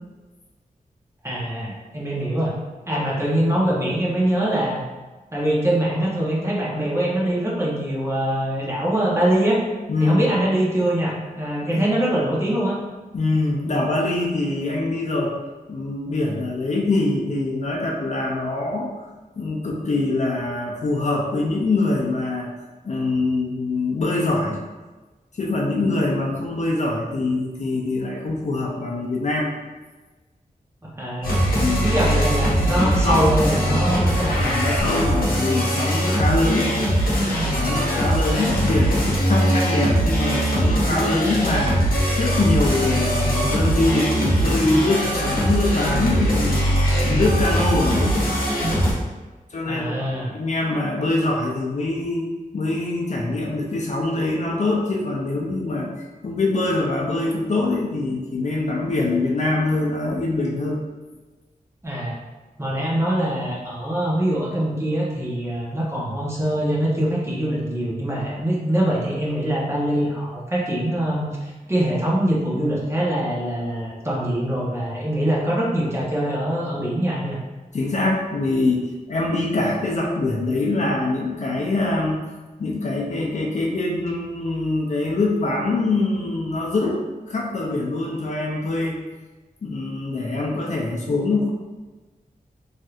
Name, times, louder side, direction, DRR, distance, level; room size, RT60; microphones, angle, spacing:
voice 1, 1.2-2.5 2.9-4.8 5.3-9.6 10.0-12.8 30.8-31.4 31.8-34.3 49.7-50.3 61.8-62.1 62.6-77.4, right 1 dB, 20° right, -6 dB, 0.8 m, -23 dB
voice 2, 9.9-10.3 11.6-11.8 13.1-15.3 15.7-19.0 19.4-22.5 22.8-24.6 25.4-29.5 31.6-31.9 32.8-33.3 34.2-36.7 37.5-41.8 42.2-46.7 47.0-48.2 49.5-52.2 52.5-60.8 77.7-82.2 82.6-89.0 89.6-91.5, left 2 dB, 55° left, -2 dB, 0.5 m, -24 dB
sound 1, 31.2-48.9, equal, 85° left, 0.9 m, -21 dB
3.2 x 2.7 x 2.4 m, 1.2 s
wide cardioid pair, 85°, 15 cm